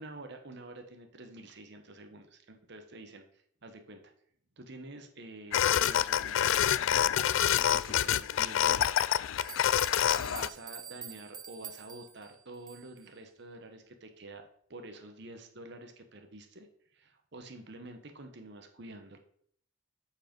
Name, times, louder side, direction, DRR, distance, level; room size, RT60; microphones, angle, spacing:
voice 1, 0.0-4.1 4.6-7.0 7.5-9.2 10.2-19.2, right 2 dB, 55° right, 6 dB, 0.9 m, -48 dB
sound 1, 5.5-10.5, left 10 dB, 70° left, 0.3 m, -27 dB
sound 2, 8.9-9.0 9.4-13.1, right 8 dB, 20° right, 0.4 m, -47 dB
7.7 x 4.7 x 5.2 m, 0.63 s
head